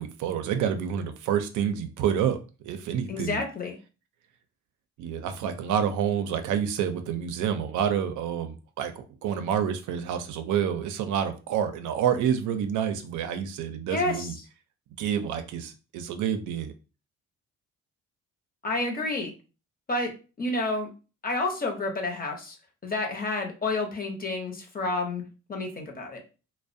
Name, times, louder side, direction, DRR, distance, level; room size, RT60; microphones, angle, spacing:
voice 1, 0.0-2.4 2.6-3.4 5.0-14.3 15.0-16.7, right 8 dB, 80° right, 8 dB, 0.5 m, -28 dB
voice 2, 3.1-3.7 13.9-14.3 18.6-19.3 19.9-20.1 20.4-20.9 21.2-22.6 22.8-25.2 25.5-26.2, left 2 dB, 30° left, 2 dB, 0.7 m, -29 dB
2.3 x 2.1 x 2.5 m, 0.33 s
cardioid pair, 90°, 30 cm